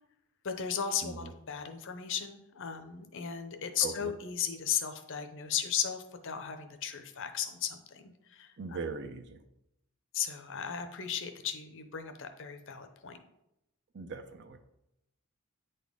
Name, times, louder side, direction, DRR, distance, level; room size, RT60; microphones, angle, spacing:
voice 1, 0.4-8.8 10.1-13.2, left 8 dB, 60° left, 8 dB, 0.7 m, -36 dB
voice 2, 8.6-9.4 13.9-14.7, right 4 dB, 50° right, 8 dB, 0.6 m, -40 dB
9.0 x 4.1 x 3.6 m, 0.84 s
head